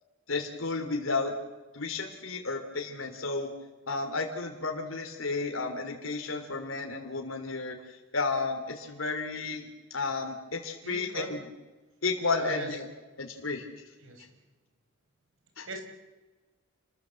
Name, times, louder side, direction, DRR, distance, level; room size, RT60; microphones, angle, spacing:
voice 1, 0.3-1.3 1.7-3.5 3.9-11.4 12.0-12.9 13.2-13.6 15.6-15.7, left 3 dB, 85° left, 3 dB, 3.5 m, -32 dB
voice 2, 10.8-11.4 12.4-12.7 14.0-14.3 15.7-15.8, right 2 dB, 85° right, 6 dB, 5.2 m, -38 dB
29.5 x 20.5 x 7.7 m, 1.2 s
head